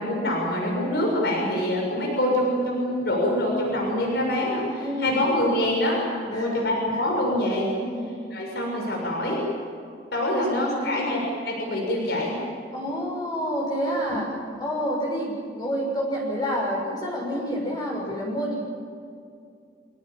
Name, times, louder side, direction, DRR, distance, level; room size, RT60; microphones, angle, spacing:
voice 1, 0.0-6.0 6.3-7.7 8.3-9.4 10.1-11.2 11.4-12.4, left 1 dB, 65° left, -2 dB, 6.7 m, -25 dB
voice 2, 4.8-5.2 6.3-7.0 7.8-8.1 10.3-11.0 12.7-14.3 14.6-18.6, equal, 25° left, -3 dB, 6.7 m, -29 dB
27.5 x 18.5 x 9.0 m, 2.4 s
head